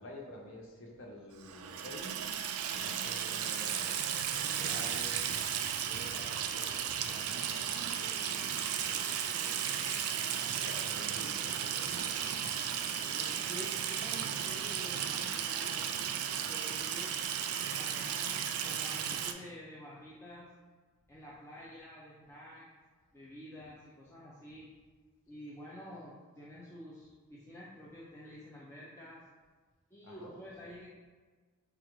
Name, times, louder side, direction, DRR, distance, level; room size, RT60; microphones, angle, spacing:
voice 1, 0.0-2.1 2.7-10.2 10.6-12.3 30.0-30.3 30.6-30.7, left 1 dB, 60° left, -1 dB, 0.8 m, -50 dB
Water tap faucet / Sink (filling or washing), 1.4-19.3, right 8 dB, 70° right, 0.3 m, -35 dB
voice 2, 12.8-16.0 16.5-17.4 17.7-20.5 21.1-22.7 23.1-24.7 25.3-29.2 29.9-30.9, equal, 10° left, -7 dB, 0.4 m, -49 dB
4.7 x 2.4 x 3.0 m, 1.4 s
head